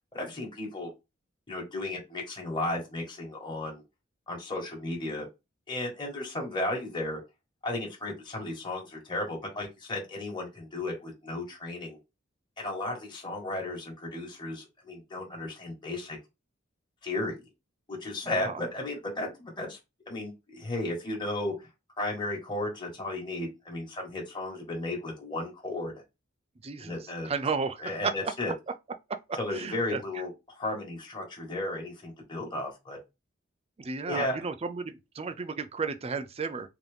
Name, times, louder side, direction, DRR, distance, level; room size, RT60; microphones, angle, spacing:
voice 1, 0.1-0.9 1.5-3.8 4.3-5.3 5.7-7.2 7.6-12.0 12.6-16.2 17.0-17.4 17.9-19.8 20.1-21.5 22.0-25.9 26.8-27.3 27.8-28.5 29.4-33.0 34.1-34.4, left 2 dB, 25° left, 1.4 m, -34 dB
voice 2, 26.6-27.0 27.2-28.3 29.1-30.0 33.8-36.7, right 5 dB, 30° right, 0.5 m, -33 dB
3.8 x 2.9 x 3.4 m
head